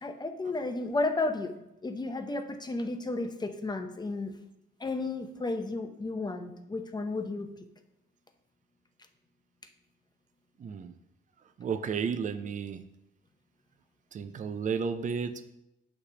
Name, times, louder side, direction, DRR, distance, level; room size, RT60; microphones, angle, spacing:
voice 1, 0.0-4.3 4.8-7.5, left 2 dB, 20° left, 6 dB, 0.8 m, -33 dB
voice 2, 10.6-10.9 11.6-12.8 14.1-15.4, right 6 dB, 40° right, 10 dB, 0.5 m, -32 dB
8.4 x 3.3 x 6.2 m, 0.88 s
cardioid pair, 90°, 20 cm